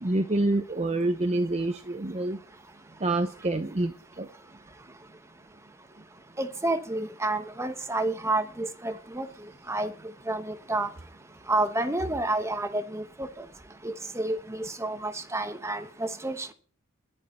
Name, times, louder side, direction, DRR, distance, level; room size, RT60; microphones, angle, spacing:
voice 1, 0.0-2.4 3.0-4.3, right 2 dB, 30° right, 7 dB, 0.7 m, -27 dB
voice 2, 6.4-9.3 9.7-9.9 10.3-10.9 11.5-13.4 13.8-16.5, right 2 dB, 15° right, 8 dB, 1.1 m, -29 dB
11.5 x 6.5 x 8.9 m, 0.43 s
head